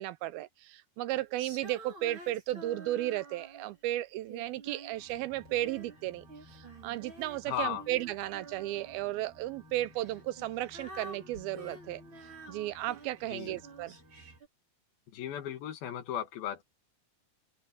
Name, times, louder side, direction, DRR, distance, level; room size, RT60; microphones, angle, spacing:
voice 1, 0.0-6.2 6.5-12.0 12.5-14.0, right 15 dB, 80° right, 2.4 m, -34 dB
Female singing, 1.4-3.8 4.3-6.0 6.3-9.1 9.9-14.5, right 2 dB, 30° right, 5.8 m, -49 dB
sound 1, 4.9-14.4, equal, 60° right, 5.4 m, -57 dB
voice 2, 7.5-7.8 13.3-13.6 15.1-16.6, left 11 dB, 70° left, 3.4 m, -36 dB
open air
omnidirectional pair, 4.5 m